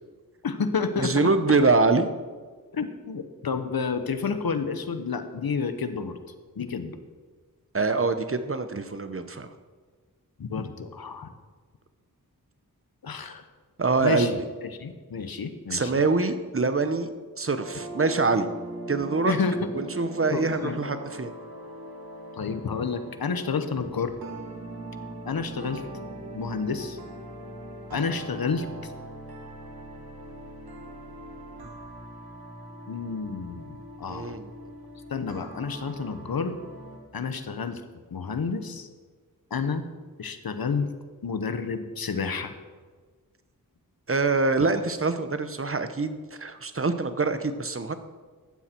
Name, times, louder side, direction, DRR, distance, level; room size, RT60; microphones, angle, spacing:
voice 1, 0.4-1.1 2.7-6.2 6.6-7.0 10.4-11.3 13.0-13.4 14.0-16.0 19.2-19.7 20.3-20.8 22.3-24.1 25.2-25.8 26.3-27.0 27.9-28.9 32.9-34.4 35.1-36.6 37.1-37.8 38.1-38.9 39.5-39.9 40.2-40.9 41.2-42.5, left 5 dB, 80° left, 9 dB, 1.1 m, -30 dB
voice 2, 1.0-2.1 7.7-9.5 13.8-14.4 15.7-17.1 17.4-18.5 18.9-19.3 19.7-21.3 34.1-34.5 44.1-48.0, right 3 dB, 40° right, 10 dB, 0.9 m, -24 dB
sound 1, 17.6-37.0, right 1 dB, 85° right, 2.1 m, -41 dB
15.5 x 12.0 x 4.5 m, 1.5 s
wide cardioid pair, 85°, 36 cm